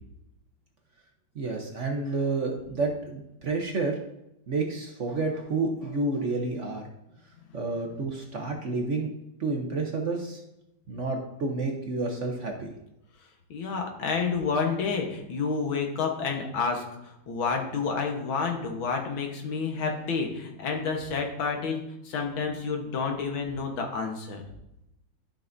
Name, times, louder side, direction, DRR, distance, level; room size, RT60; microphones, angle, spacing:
voice 1, 1.3-4.0 4.5-6.8 7.5-9.1 9.4-10.4 10.9-12.7, right 3 dB, 50° right, 1 dB, 1.0 m, -30 dB
voice 2, 13.5-24.4, left 5 dB, 90° left, 2 dB, 2.1 m, -29 dB
12.5 x 5.7 x 2.7 m, 0.85 s
omnidirectional pair, 2.1 m